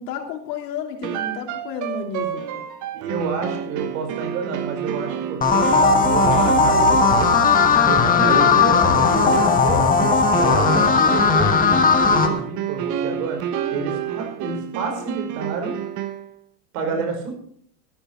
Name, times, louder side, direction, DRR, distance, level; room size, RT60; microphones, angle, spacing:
voice 1, 0.0-2.7 8.1-10.0 16.9-17.1, left 6 dB, 80° left, 3 dB, 3.1 m, -31 dB
sound 1, 1.0-16.3, right 10 dB, 40° right, 1.1 m, -30 dB
voice 2, 2.9-7.3 7.9-9.3 10.3-13.4 13.7-15.7 16.7-17.4, right 5 dB, 65° right, 4 dB, 5.0 m, -29 dB
sound 2, 5.4-12.3, left 4 dB, 15° left, 1.3 m, -17 dB
sound 3, 5.6-12.4, left 1 dB, ahead, 4.7 m, -30 dB
13.5 x 11.0 x 4.5 m, 0.63 s
supercardioid pair, 140°, 48 cm